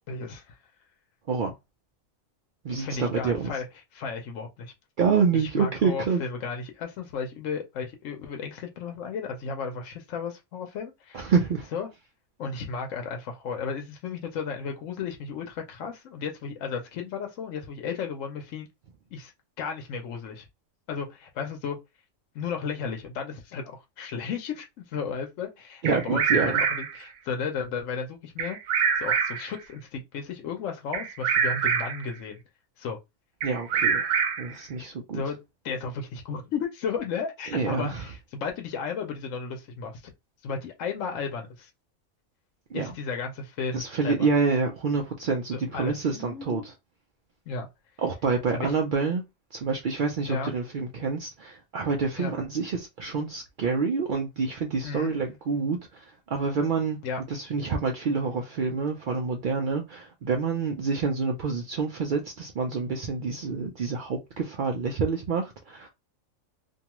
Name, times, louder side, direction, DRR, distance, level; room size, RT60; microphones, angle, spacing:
voice 1, 0.1-0.6 2.8-3.7 3.9-4.7 5.3-11.3 11.7-11.9 12.4-18.7 19.1-19.3 19.6-20.5 20.9-21.8 22.3-28.6 29.0-32.4 32.8-33.0 35.1-35.4 35.6-40.1 40.4-41.7 42.7-44.3 45.5-46.7 47.5-47.7 48.5-48.7 50.3-50.5 52.2-52.3 54.8-55.1 57.0-57.2, left 5 dB, 70° left, 1.0 m, -34 dB
voice 2, 2.6-3.5 5.0-6.2 11.1-11.7 25.8-26.6 33.4-35.2 37.5-38.0 42.7-42.9 43.7-46.7 48.0-49.2 49.5-56.0 56.3-57.0 57.3-65.9, right 5 dB, 85° right, 0.4 m, -27 dB
Bird vocalization bird call bird song, 25.8-27.0 28.4-29.6 30.9-32.1 33.4-34.6, right 6 dB, 70° right, 0.9 m, -25 dB
2.6 x 2.3 x 2.9 m
omnidirectional pair, 1.4 m